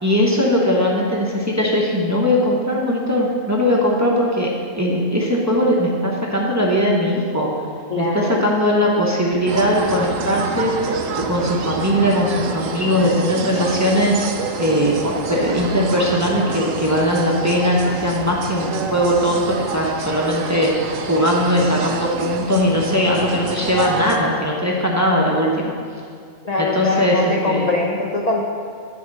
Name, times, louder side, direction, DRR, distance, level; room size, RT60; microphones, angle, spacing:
voice 1, 0.0-4.5 4.7-7.5 8.0-10.9 11.3-14.2 14.6-25.7 26.6-27.7, equal, 15° right, -3 dB, 0.9 m, -19 dB
voice 2, 7.9-8.5 26.4-28.4, left 3 dB, 40° left, -2 dB, 0.6 m, -22 dB
sound 1, 9.5-24.2, right 5 dB, 80° right, 1.0 m, -28 dB
10.0 x 3.6 x 6.6 m, 2.2 s
omnidirectional pair, 1.3 m